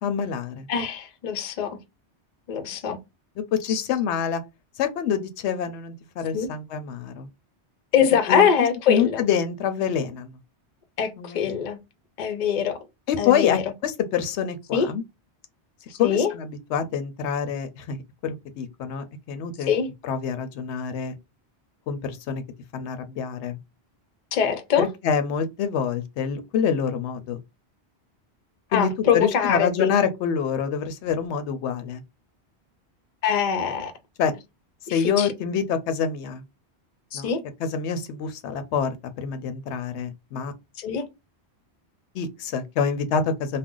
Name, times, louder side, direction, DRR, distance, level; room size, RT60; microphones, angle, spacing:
voice 1, 0.0-0.7 2.6-2.7 3.5-4.4 4.8-7.3 8.3-10.3 11.2-11.4 13.1-15.0 16.0-19.7 20.0-21.1 21.9-22.4 22.7-23.6 24.8-27.4 28.7-32.0 34.2-34.3 34.9-36.4 37.1-37.3 37.6-38.9 39.2-40.5 42.1-43.6, left 7 dB, 90° left, 0.9 m, -26 dB
voice 2, 0.7-1.8 2.5-3.0 3.7-3.8 6.3-6.5 7.9-9.3 11.0-11.8 12.2-12.9 13.2-13.6 14.7-14.9 15.9-16.3 19.7-19.9 24.3-24.9 28.7-29.9 33.2-33.9 34.9-35.3 37.1-37.4 40.8-41.1, left 7 dB, 50° left, 0.6 m, -23 dB
2.5 x 2.1 x 3.6 m
omnidirectional pair, 1.1 m